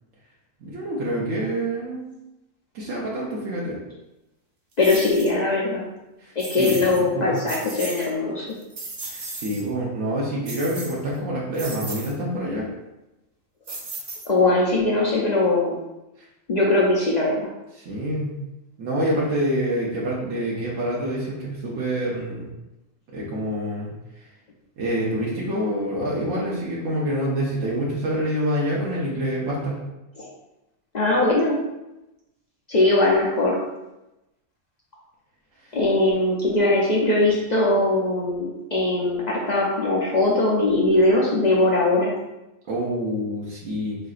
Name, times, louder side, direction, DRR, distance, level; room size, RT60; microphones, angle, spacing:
voice 1, 0.6-2.1 2.7-3.8 6.2-7.3 9.0-12.7 17.7-18.3 18.8-22.5 23.1-24.2 24.8-29.8 35.6-35.8 42.7-44.0, equal, 75° right, -5 dB, 1.1 m, -27 dB
voice 2, 4.8-5.8 6.4-8.5 14.3-15.8 16.5-17.5 30.2-30.3 30.9-31.6 32.7-33.6 35.7-42.1, left 2 dB, 55° left, -4 dB, 0.4 m, -20 dB
sound 1, 4.8-5.3 6.4-7.0 7.4-8.1 8.5-9.6 10.4-11.2 11.5-12.1 13.7-14.5, right 3 dB, 45° right, 0.7 m, -35 dB
3.7 x 3.3 x 2.4 m, 0.97 s
omnidirectional pair, 1.4 m